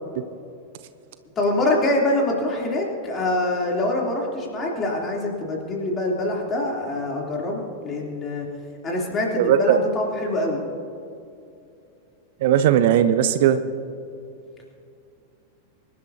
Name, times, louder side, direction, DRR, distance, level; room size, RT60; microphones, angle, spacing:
voice 1, 1.4-8.5 8.8-10.6, left 1 dB, 25° left, -2 dB, 3.2 m, -25 dB
voice 2, 9.4-9.8 12.4-13.6, right 10 dB, 55° right, 12 dB, 0.6 m, -18 dB
24.5 x 11.5 x 2.8 m, 2.5 s
figure-of-eight pair, 90°, 0 cm